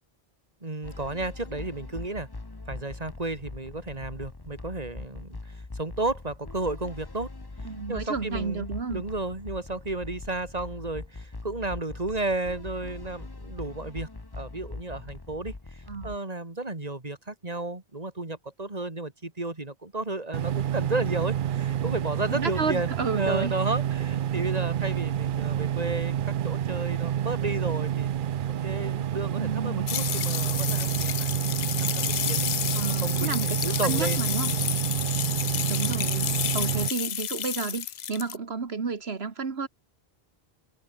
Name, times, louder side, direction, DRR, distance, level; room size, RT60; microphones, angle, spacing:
voice 1, 0.6-2.3 2.7-7.3 7.6-28.1 28.6-32.5 33.0-34.7, right 2 dB, 40° right, 3.1 m, -33 dB
sound 1, 0.8-16.2, left 3 dB, 25° left, 1.2 m, -41 dB
voice 2, 7.7-9.0 15.9-16.1 22.3-23.6 29.4-29.9 32.7-34.5 35.7-39.7, right 5 dB, 80° right, 1.9 m, -32 dB
sound 2, 20.3-36.9, right 10 dB, 60° right, 0.7 m, -28 dB
sound 3, 29.9-38.4, left 10 dB, 55° left, 0.5 m, -30 dB
omnidirectional pair, 1.0 m